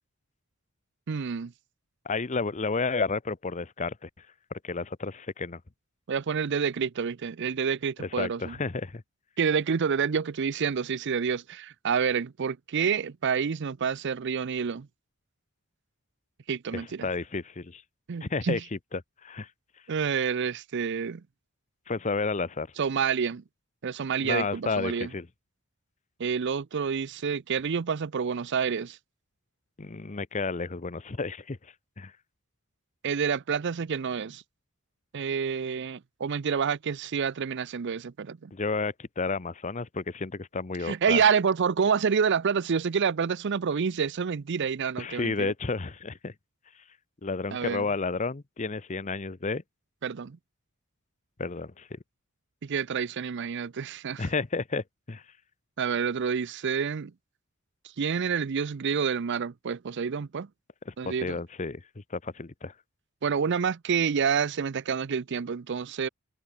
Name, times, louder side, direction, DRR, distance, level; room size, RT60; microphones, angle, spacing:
voice 1, 1.1-1.5 6.1-8.6 9.4-14.9 16.5-17.1 18.1-18.6 19.9-21.2 22.8-23.4 23.8-25.1 26.2-29.0 33.0-34.4 35.1-38.5 40.8-45.5 47.5-47.9 50.0-50.4 52.6-54.3 55.8-57.1 58.0-60.5 61.0-61.4 63.2-66.1, right 6 dB, 55° right, 0.5 m, -28 dB
voice 2, 2.0-4.1 4.5-5.6 8.0-9.0 16.7-17.8 18.2-19.5 21.9-22.7 24.2-25.3 29.8-32.1 38.5-41.2 45.0-46.3 47.2-49.6 51.4-52.0 54.2-55.2 60.9-61.8 62.1-62.7, left 4 dB, 35° left, 0.8 m, -31 dB
head